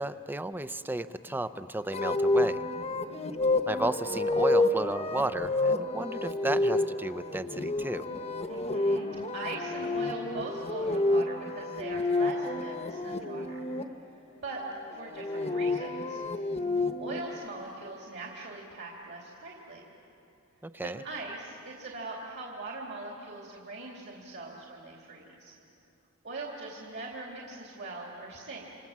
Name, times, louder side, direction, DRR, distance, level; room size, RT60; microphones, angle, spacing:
voice 1, 0.0-2.6 3.7-8.1 20.6-21.0, right 1 dB, 10° right, 12 dB, 0.6 m, -33 dB
sound 1, 1.9-13.8 15.0-17.2, left 2 dB, 30° left, 1.1 m, -29 dB
voice 2, 8.5-13.7 14.1-14.2 14.4-14.6 14.9-16.2 17.0-19.8 20.8-25.5 26.2-28.6, right 3 dB, 50° right, -2 dB, 3.1 m, -41 dB
28.5 x 26.5 x 7.4 m, 2.8 s
head